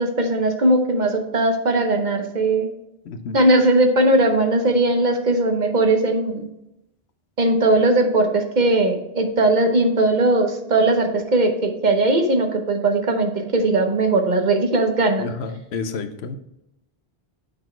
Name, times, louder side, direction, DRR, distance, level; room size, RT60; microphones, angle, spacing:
voice 1, 0.0-2.7 3.3-6.5 7.4-15.3, right 2 dB, 50° right, 5 dB, 0.9 m, -19 dB
voice 2, 3.1-3.4 15.2-16.4, left 4 dB, 90° left, 9 dB, 0.9 m, -30 dB
6.9 x 4.0 x 4.4 m, 0.86 s
omnidirectional pair, 1.0 m